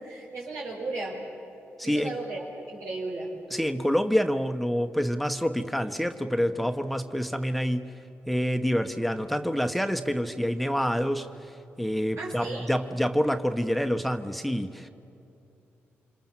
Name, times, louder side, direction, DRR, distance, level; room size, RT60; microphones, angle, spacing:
voice 1, 0.0-1.2 1.8-3.3 12.2-12.7, right 2 dB, 90° right, -6 dB, 5.7 m, -35 dB
voice 2, 1.8-2.2 3.5-7.9 8.3-14.9, equal, ahead, 7 dB, 1.3 m, -27 dB
29.0 x 26.0 x 7.5 m, 2.7 s
cardioid pair, 70°, 5 cm